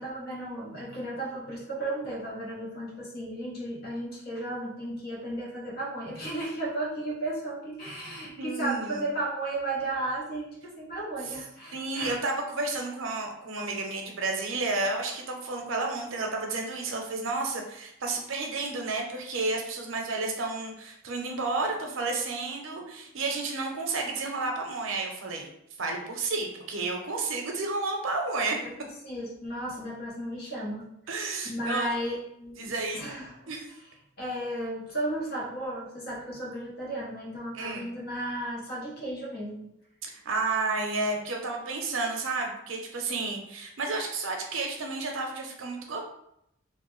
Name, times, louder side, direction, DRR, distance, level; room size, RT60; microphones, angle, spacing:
voice 1, 0.0-12.1 29.0-30.9 31.5-33.5 34.2-39.7, right 1 dB, 50° left, -3 dB, 0.8 m, -34 dB
voice 2, 8.4-9.0 11.2-11.4 11.7-25.5 25.8-28.6 31.1-31.9 32.6-33.0 33.5-33.7 37.5-37.9 40.0-46.0, right 3 dB, 80° right, 2 dB, 0.6 m, -31 dB
3.1 x 2.1 x 3.0 m, 0.78 s
head